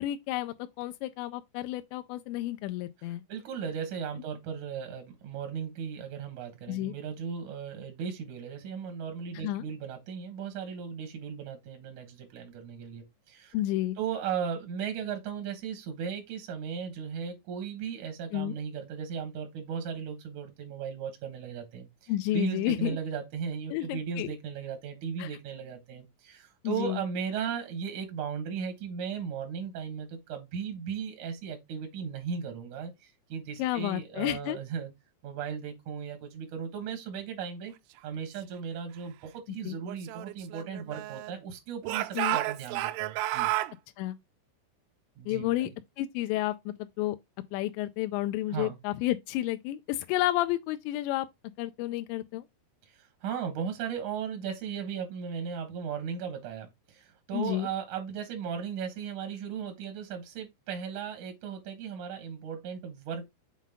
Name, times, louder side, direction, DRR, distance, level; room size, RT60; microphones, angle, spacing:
voice 1, 0.0-3.2 6.7-6.9 9.4-9.6 13.5-14.0 18.3-18.6 22.1-23.0 23.7-24.3 25.2-25.3 26.6-27.0 33.6-34.6 39.7-39.8 42.2-42.4 44.0-44.2 45.3-45.7 46.0-47.2 47.5-51.3 51.6-52.4 57.3-57.7, left 15 dB, 85° left, 2.7 m, -31 dB
voice 2, 3.3-13.5 14.0-34.9 35.2-37.7 38.0-43.5 45.2-45.7 48.5-48.8 52.9-63.3, right 7 dB, 70° right, 1.8 m, -36 dB
Speech / Shout, 39.9-41.4 41.8-43.7, right 16 dB, 90° right, 3.0 m, -32 dB
7.3 x 3.8 x 3.5 m
omnidirectional pair, 5.3 m